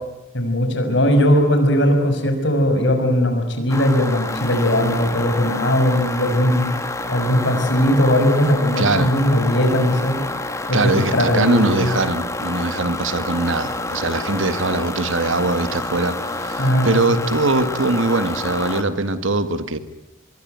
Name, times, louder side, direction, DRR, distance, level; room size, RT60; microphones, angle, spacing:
voice 1, 0.3-6.7 7.1-10.2 10.7-11.9 16.6-17.2, equal, 60° left, 6 dB, 6.1 m, -18 dB
sound 1, 3.7-18.8, left 2 dB, 15° left, 2.1 m, -28 dB
voice 2, 8.8-9.1 10.7-19.8, right 2 dB, 75° right, 11 dB, 2.0 m, -21 dB
26.0 x 22.5 x 9.4 m, 0.98 s
head